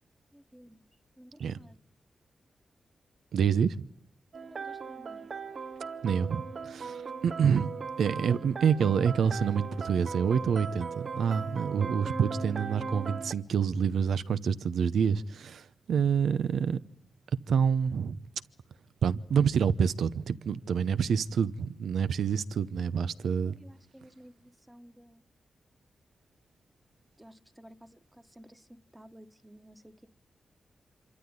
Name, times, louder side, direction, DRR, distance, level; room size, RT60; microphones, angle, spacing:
voice 1, 0.3-0.9 1.2-1.8 4.4-5.3 23.4-25.2 27.2-30.1, equal, 10° right, 1.3 m, -54 dB
voice 2, 3.3-3.9 6.0-7.7 8.0-16.8 17.5-18.2 19.0-23.6, right 7 dB, 90° right, 0.8 m, -27 dB
sound 1, 4.3-13.3, right 5 dB, 55° right, 0.9 m, -38 dB
26.0 x 13.5 x 9.8 m
cardioid pair, 85°, 0 cm